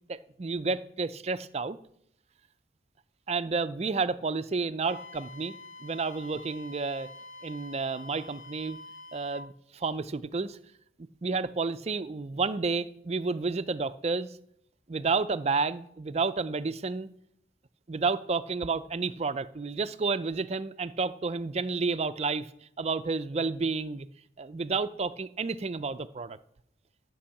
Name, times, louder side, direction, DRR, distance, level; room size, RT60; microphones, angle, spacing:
voice 1, 0.1-1.8 3.3-5.6 5.8-7.1 7.4-8.8 9.1-10.6 11.2-14.3 14.9-17.1 17.9-22.5 22.8-24.1 24.4-26.4, right 4 dB, 35° right, 13 dB, 0.4 m, -30 dB
Wind instrument woodwind instrument, 4.8-9.5, left 2 dB, 40° left, 0.5 m, -47 dB
11.5 x 5.4 x 7.1 m, 0.71 s
head